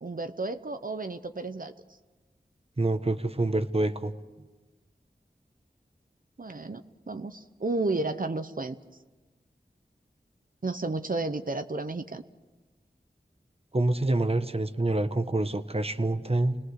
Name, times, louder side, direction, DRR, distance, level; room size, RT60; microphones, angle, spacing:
voice 1, 0.0-1.7 6.4-8.8 10.6-12.2, right 3 dB, 55° right, 8 dB, 0.9 m, -32 dB
voice 2, 2.8-4.1 13.7-16.6, right 2 dB, 35° right, 9 dB, 1.2 m, -26 dB
29.5 x 19.5 x 6.6 m, 1.2 s
wide cardioid pair, 45°, 18 cm